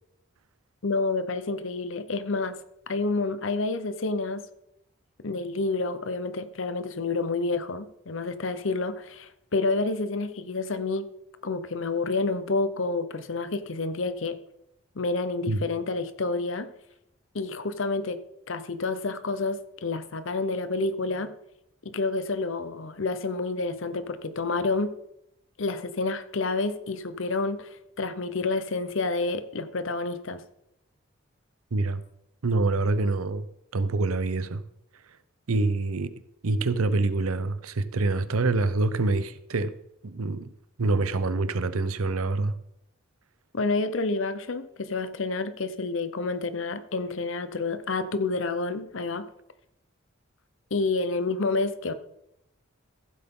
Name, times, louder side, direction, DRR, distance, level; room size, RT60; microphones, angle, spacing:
voice 1, 0.8-2.6 2.9-4.5 5.2-11.1 11.4-14.4 14.9-16.7 17.3-18.2 18.5-21.3 21.8-24.9 25.6-30.4 43.5-49.3 50.7-51.9, left 3 dB, 65° left, 0.8 m, -29 dB
voice 2, 31.7-32.0 32.4-33.5 33.7-34.6 35.5-36.1 36.4-39.7 40.0-40.5 40.8-42.5, right 3 dB, 90° right, 0.7 m, -26 dB
15.0 x 7.9 x 3.7 m
head